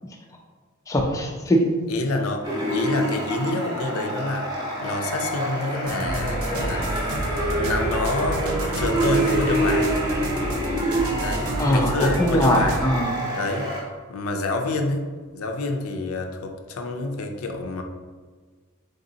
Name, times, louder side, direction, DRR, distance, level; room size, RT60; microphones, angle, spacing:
voice 1, 0.9-1.6 11.6-13.2, equal, 15° left, 1 dB, 0.3 m, -21 dB
voice 2, 1.9-4.5 4.8-6.9 7.6-9.9 11.2-12.8 13.3-13.7 14.1-15.1 15.3-17.8, left 2 dB, 80° left, 4 dB, 0.5 m, -27 dB
sound 1, 2.4-13.8, right 1 dB, 20° right, 0.7 m, -27 dB
sound 2, 5.8-12.8, right 1 dB, 75° right, 0.5 m, -29 dB
3.9 x 3.5 x 2.7 m, 1.5 s
head